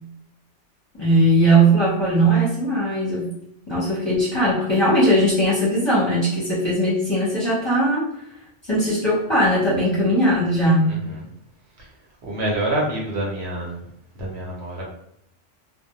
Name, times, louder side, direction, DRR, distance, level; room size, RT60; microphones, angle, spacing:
voice 1, 1.0-3.3 3.7-8.1 8.7-10.9, right 1 dB, 25° left, -8 dB, 0.7 m, -19 dB
voice 2, 12.2-13.8 14.2-14.8, right 1 dB, 65° right, -2 dB, 0.9 m, -26 dB
2.1 x 2.1 x 2.8 m, 0.76 s
omnidirectional pair, 1.2 m